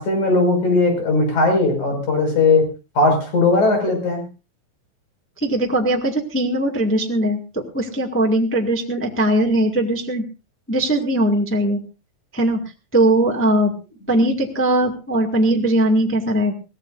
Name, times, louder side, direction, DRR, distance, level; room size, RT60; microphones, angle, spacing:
voice 1, 0.0-2.6 3.0-4.2, left 3 dB, 55° left, 4 dB, 6.8 m, -18 dB
voice 2, 5.4-10.2 10.7-11.8 12.3-12.6 12.9-13.7 14.1-16.5, right 1 dB, 10° left, 2 dB, 0.7 m, -19 dB
22.5 x 17.0 x 2.6 m, 0.32 s
omnidirectional pair, 4.0 m